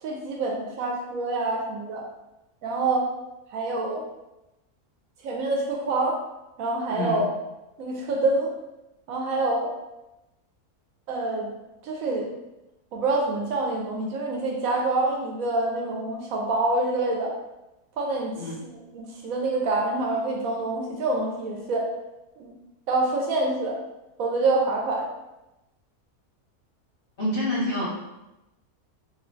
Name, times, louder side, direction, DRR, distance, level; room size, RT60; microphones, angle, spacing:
voice 1, 0.0-2.0 2.6-3.1 3.5-4.0 5.2-6.2 6.6-7.3 7.8-8.5 9.1-9.7 11.1-11.5 11.8-12.3 12.9-17.3 18.0-18.4 18.6-21.9 22.4-22.5 22.9-23.8 24.2-25.1, right 2 dB, 70° right, 0 dB, 0.9 m, -26 dB
voice 2, 6.9-7.2 18.4-18.6 27.2-27.8, left 1 dB, 50° left, -7 dB, 0.7 m, -27 dB
2.6 x 2.2 x 3.7 m, 0.96 s
omnidirectional pair, 1.6 m